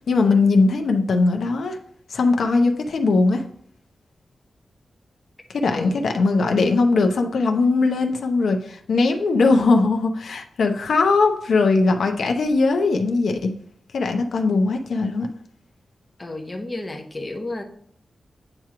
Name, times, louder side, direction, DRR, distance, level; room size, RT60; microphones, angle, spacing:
voice 1, 0.1-1.8 2.1-3.4 5.5-13.5 13.9-15.3, left 3 dB, 85° left, 4 dB, 0.7 m, -20 dB
voice 2, 5.7-6.1 16.2-17.6, left 2 dB, 20° left, 3 dB, 0.8 m, -32 dB
8.8 x 3.0 x 4.8 m, 0.67 s
wide cardioid pair, 160°, 0 cm